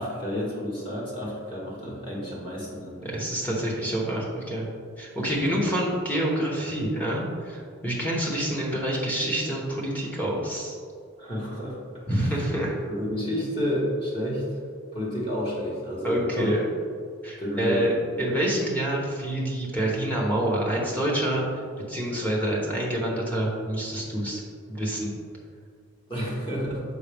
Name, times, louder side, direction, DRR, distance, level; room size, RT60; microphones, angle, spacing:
voice 1, 0.0-3.0 5.5-5.6 11.2-11.8 12.1-12.5 12.9-14.5 14.9-16.5 17.4-17.9 26.1-26.8, equal, 25° left, -6 dB, 1.5 m, -30 dB
voice 2, 3.0-4.7 5.0-10.8 12.1-12.8 16.0-16.7 17.2-17.9 18.2-21.4 21.9-24.4 24.7-25.1, right 1 dB, 10° left, -5 dB, 1.0 m, -27 dB
6.3 x 5.0 x 3.5 m, 2.1 s
head